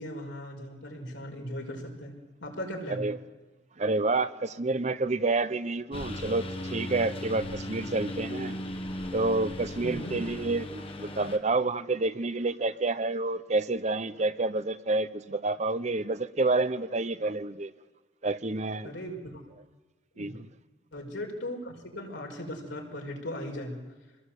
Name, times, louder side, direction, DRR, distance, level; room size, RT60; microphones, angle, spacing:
voice 1, 0.0-2.1 2.4-3.1 9.8-10.2 18.8-19.4 20.1-20.4 20.9-23.8, left 1 dB, 85° left, 1 dB, 5.4 m, -38 dB
voice 2, 3.8-8.6 9.1-17.7 18.2-18.9 20.2-20.5, right 3 dB, 40° right, 13 dB, 0.8 m, -29 dB
Engine, 5.9-11.4, left 1 dB, 30° left, 1.8 m, -37 dB
26.0 x 20.5 x 8.2 m, 1.2 s
head